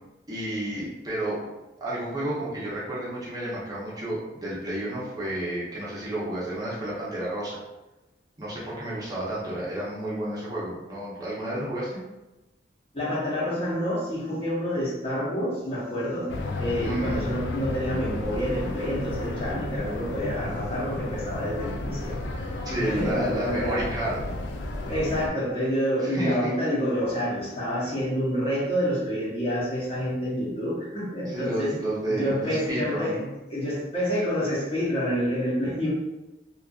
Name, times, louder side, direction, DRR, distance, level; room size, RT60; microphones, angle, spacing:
voice 1, 0.3-1.4 1.8-7.6 8.4-12.0 16.8-17.3 22.6-24.3 26.0-26.5 31.3-33.1, right 1 dB, 20° right, -7 dB, 0.6 m, -31 dB
voice 2, 12.9-16.3 16.6-23.8 24.7-31.7 32.1-35.9, equal, 35° left, -7 dB, 0.8 m, -28 dB
sound 1, 16.3-25.3, left 2 dB, 75° left, 0.3 m, -33 dB
2.6 x 2.4 x 2.3 m, 1.0 s
head